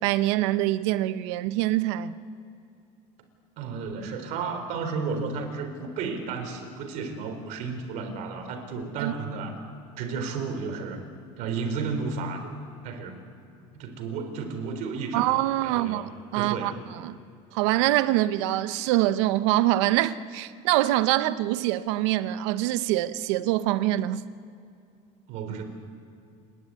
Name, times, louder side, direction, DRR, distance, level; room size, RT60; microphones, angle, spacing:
voice 1, 0.0-2.1 9.0-9.1 15.1-17.2 17.5-24.3, right 15 dB, 85° right, 0.9 m, -25 dB
voice 2, 3.6-9.6 10.0-11.0 11.4-12.6 12.8-13.1 13.7-15.2 15.6-16.0 16.4-16.8 25.3-25.6, right 5 dB, 60° right, 4.0 m, -32 dB
29.0 x 11.5 x 9.4 m
cardioid pair, 150°, 14 cm